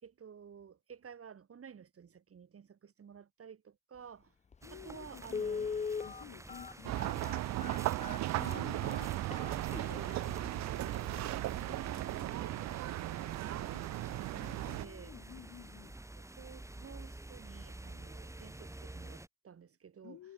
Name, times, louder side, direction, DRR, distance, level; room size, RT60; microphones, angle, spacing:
voice 1, 0.0-4.3 4.7-5.9 8.5-8.9 9.8-14.3 14.7-15.1 16.2-20.2, right 7 dB, 50° right, 6.6 m, -52 dB
Telephone, 4.5-4.6 5.3-10.1 10.7-10.8 11.1-11.3 11.7-12.0 12.3-12.4, left 5 dB, 25° left, 0.6 m, -40 dB
voice 2, 4.6-5.7 6.0-7.9 8.3-9.1 13.7-13.9 14.3-16.0 20.0-20.3, left 12 dB, 70° left, 3.4 m, -53 dB
sound 1, 4.6-19.3, right 2 dB, 10° right, 1.9 m, -49 dB
sound 2, 6.8-14.9, right 16 dB, 65° right, 0.4 m, -36 dB
cardioid pair, 90°, 30 cm